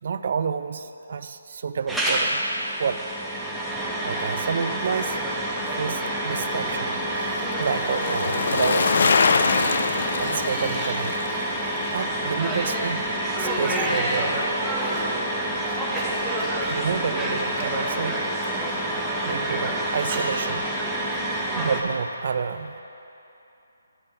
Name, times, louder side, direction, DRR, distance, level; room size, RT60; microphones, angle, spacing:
voice 1, 0.0-2.4 2.8-3.1 4.0-5.2 5.8-9.2 10.2-11.2 11.9-13.0 13.4-14.5 16.7-18.2 19.2-20.6 21.5-22.8, right 6 dB, 50° right, 11 dB, 0.4 m, -29 dB
sound 1, 1.9-21.8, right 1 dB, ahead, 0.7 m, -27 dB
Bicycle, 5.2-13.6 13.9-14.0, left 4 dB, 55° left, 0.4 m, -26 dB
sound 2, 12.7-13.1 13.4-14.1 14.4-15.1 15.5-20.4 21.1-21.2, right 2 dB, 25° right, 1.4 m, -39 dB
11.0 x 5.1 x 5.6 m, 2.9 s
hypercardioid pair, 160°, 0 cm